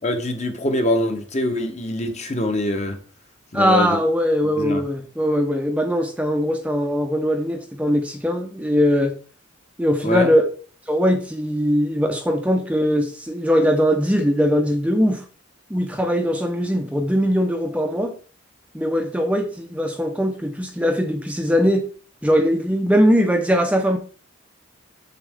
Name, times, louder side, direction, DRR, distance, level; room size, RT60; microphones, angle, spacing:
voice 1, 0.0-3.0 3.5-4.0 4.6-4.8 10.0-10.3, left 1 dB, 35° left, 1.1 m, -24 dB
voice 2, 3.5-9.1 9.8-10.4 10.9-15.2 15.7-18.1 18.7-21.9 22.2-24.0, equal, 5° right, 0.7 m, -20 dB
7.4 x 6.8 x 3.6 m
head